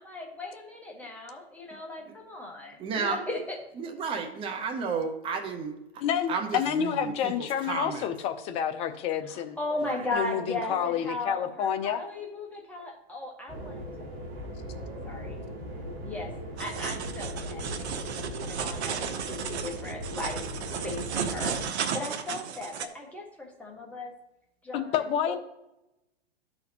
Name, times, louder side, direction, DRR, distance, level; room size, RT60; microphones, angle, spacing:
voice 1, 0.0-3.6 9.2-13.8 15.0-15.4 16.0-16.3 16.6-20.5 20.8-24.1 24.6-25.4, left 2 dB, 5° left, -1 dB, 1.3 m, -37 dB
voice 2, 2.8-3.2 3.8-5.8 6.3-8.1 9.8-10.0, right 5 dB, 15° right, 4 dB, 0.7 m, -32 dB
voice 3, 6.0-9.6 10.1-12.0 24.7-25.4, left 9 dB, 20° left, 9 dB, 0.4 m, -29 dB
sound 1, 13.5-21.7, equal, 45° right, 2.2 m, -38 dB
sound 2, 16.6-22.9, right 7 dB, 80° right, 0.8 m, -34 dB
12.5 x 4.3 x 2.8 m, 0.92 s
hypercardioid pair, 130°, 33 cm